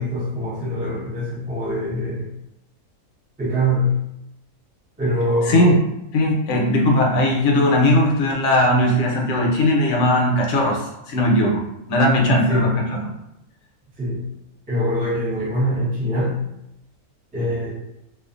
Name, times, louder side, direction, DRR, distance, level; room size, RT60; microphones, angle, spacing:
voice 1, 0.0-2.3 3.4-3.9 5.0-5.7 12.2-12.7 14.0-14.2 14.7-16.4 17.3-17.7, equal, 10° right, -7 dB, 0.4 m, -23 dB
voice 2, 5.5-5.8 6.1-11.6 11.9-12.8, left 1 dB, 65° left, -1 dB, 0.9 m, -18 dB
2.5 x 2.4 x 2.4 m, 0.84 s
omnidirectional pair, 1.5 m